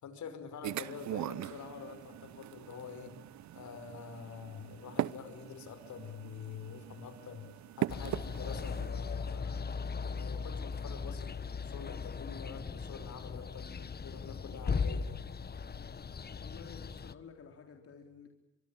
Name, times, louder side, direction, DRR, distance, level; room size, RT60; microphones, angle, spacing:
voice 1, 0.0-3.2 3.5-7.5 7.8-9.8 10.0-13.7 14.0-15.2, left 6 dB, 70° left, 10 dB, 5.6 m, -46 dB
sound 1, 0.6-8.9, right 13 dB, 70° right, 0.9 m, -41 dB
sound 2, 7.9-17.1, left 5 dB, 30° left, 1.4 m, -38 dB
voice 2, 16.4-18.3, left 6 dB, 50° left, 3 dB, 3.8 m, -52 dB
25.0 x 24.5 x 8.8 m, 0.99 s
cardioid pair, 90°, 30 cm